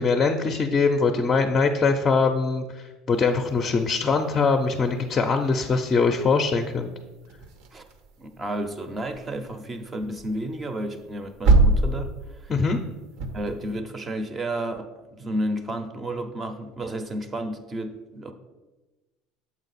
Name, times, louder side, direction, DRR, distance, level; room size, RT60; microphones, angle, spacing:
voice 1, 0.0-6.9 12.5-12.8, left 4 dB, 25° left, 5 dB, 0.5 m, -22 dB
sound 1, 3.1-13.8, right 3 dB, 70° right, 0.7 m, -28 dB
voice 2, 8.2-12.6 13.3-18.3, right 1 dB, 20° right, 8 dB, 0.6 m, -32 dB
7.2 x 4.3 x 4.1 m, 1.2 s
supercardioid pair, 130°, 0 cm